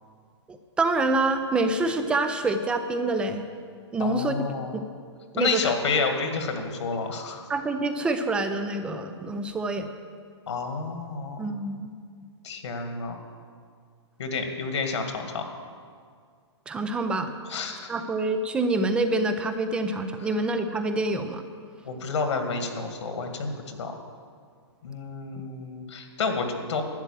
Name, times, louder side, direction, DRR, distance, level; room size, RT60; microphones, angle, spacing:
voice 1, 0.5-3.4 3.9-4.4 4.7-4.8 5.3-5.7 7.5-9.9 11.4-11.9 16.7-17.4 17.9-21.4, right 2 dB, 5° right, 8 dB, 0.4 m, -26 dB
voice 2, 4.0-4.7 5.4-7.4 10.5-11.4 12.4-13.2 14.2-15.4 17.5-17.9 21.8-23.9 24.8-26.8, left 4 dB, 75° left, 5 dB, 2.1 m, -29 dB
12.0 x 8.8 x 7.4 m, 2.1 s
hypercardioid pair, 160°, 15 cm